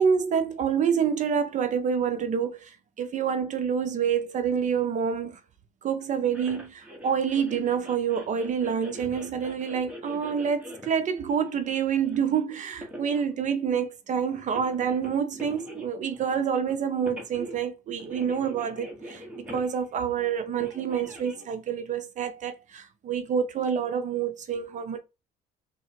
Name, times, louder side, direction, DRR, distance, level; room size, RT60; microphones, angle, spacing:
voice 1, 0.0-5.4 5.8-25.0, right 7 dB, 45° right, 0.6 m, -27 dB
sound 1, 6.3-13.2 14.3-16.7 17.1-17.7 17.9-20.0 20.6-21.5, equal, 5° right, 1.2 m, -43 dB
3.6 x 2.4 x 4.4 m
cardioid pair, 110°, 17 cm